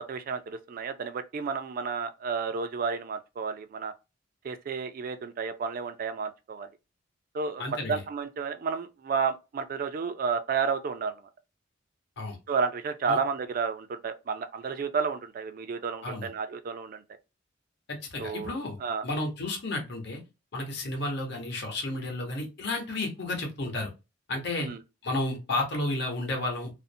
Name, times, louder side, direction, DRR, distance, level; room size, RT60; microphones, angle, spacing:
voice 1, 0.1-3.9 4.4-6.7 7.3-7.6 7.9-11.1 12.5-17.0 18.2-19.0 24.6-24.8, right 5 dB, 45° right, 0.3 m, -31 dB
voice 2, 7.6-8.0 12.2-12.4 13.1-13.2 16.0-16.3 17.9-18.8 19.0-20.2 20.5-23.9 24.3-24.7 25.0-26.7, left 2 dB, 60° left, 0.9 m, -32 dB
2.5 x 2.0 x 2.6 m
head